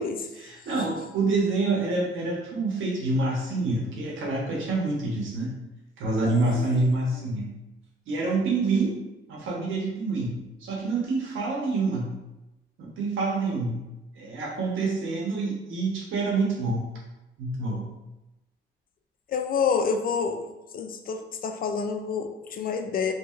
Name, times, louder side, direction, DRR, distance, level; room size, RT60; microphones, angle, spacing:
voice 1, 0.3-5.6 6.0-7.5 8.1-9.0 9.3-10.4 10.6-12.1 12.8-13.8 14.2-16.9 17.4-17.9, right 3 dB, 80° right, -3 dB, 1.0 m, -27 dB
voice 2, 6.2-6.7 19.3-20.5 20.7-23.1, left 6 dB, 45° left, 5 dB, 0.4 m, -28 dB
2.9 x 2.7 x 2.4 m, 0.98 s
cardioid pair, 90°, 20 cm